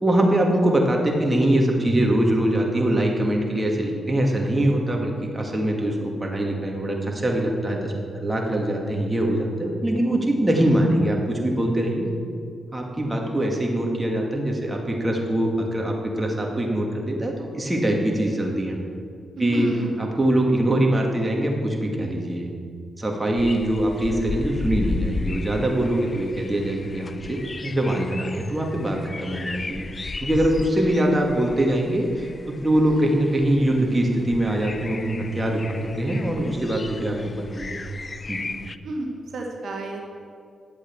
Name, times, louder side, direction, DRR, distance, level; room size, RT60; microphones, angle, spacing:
voice 1, 0.0-12.1 12.7-18.8 19.4-19.7 20.0-22.5 23.0-29.9 30.2-32.3 32.6-37.8 38.3-38.5, right 1 dB, 20° right, 0 dB, 2.0 m, -23 dB
voice 2, 19.4-19.9 38.8-40.0, right 2 dB, 75° right, 1 dB, 1.2 m, -30 dB
sound 1, 23.4-38.8, left 3 dB, 40° left, 0.4 m, -35 dB
11.0 x 7.7 x 4.6 m, 2.3 s
cardioid pair, 55°, 0 cm